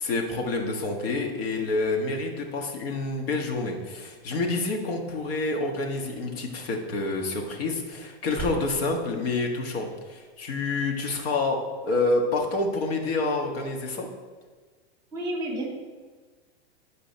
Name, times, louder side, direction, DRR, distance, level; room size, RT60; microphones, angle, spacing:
voice 1, 0.0-14.1, left 3 dB, 65° left, 2 dB, 1.7 m, -28 dB
Slam, 5.7-10.1 10.4-10.8, right 1 dB, 5° left, 1.7 m, -41 dB
voice 2, 15.1-15.7, right 1 dB, 15° right, -2 dB, 2.7 m, -30 dB
10.0 x 5.2 x 4.3 m, 1.4 s
supercardioid pair, 135°, 32 cm